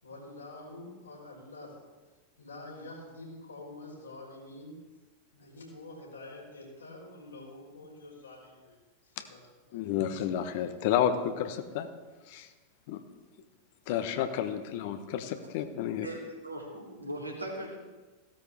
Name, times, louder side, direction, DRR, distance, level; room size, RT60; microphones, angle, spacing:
voice 1, 0.0-1.7 2.4-4.8 5.3-9.4 9.7-9.8, left 2 dB, 75° left, -2 dB, 4.2 m, -47 dB
voice 2, 9.7-11.9 12.3-12.5 12.9-13.0 13.9-16.1, left 9 dB, 50° left, 9 dB, 1.0 m, -31 dB
voice 3, 15.8-17.8, right 1 dB, 85° right, -2 dB, 2.9 m, -39 dB
16.0 x 13.0 x 3.4 m, 1.3 s
figure-of-eight pair, 90°, 0 cm